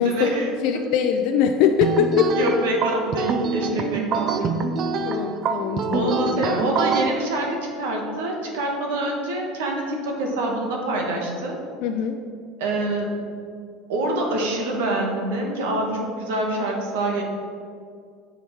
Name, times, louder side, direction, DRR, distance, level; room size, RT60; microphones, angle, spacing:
voice 1, 0.0-0.5 2.4-4.5 5.9-11.6 12.6-13.2 13.9-17.2, right 1 dB, 90° right, 1 dB, 1.3 m, -26 dB
voice 2, 0.6-2.3 5.0-6.7 11.8-12.2, left 8 dB, 65° left, 5 dB, 0.4 m, -22 dB
sound 1, 1.8-7.1, right 5 dB, 45° right, 0.5 m, -25 dB
7.1 x 4.6 x 4.5 m, 2.3 s
supercardioid pair, 115°, 0 cm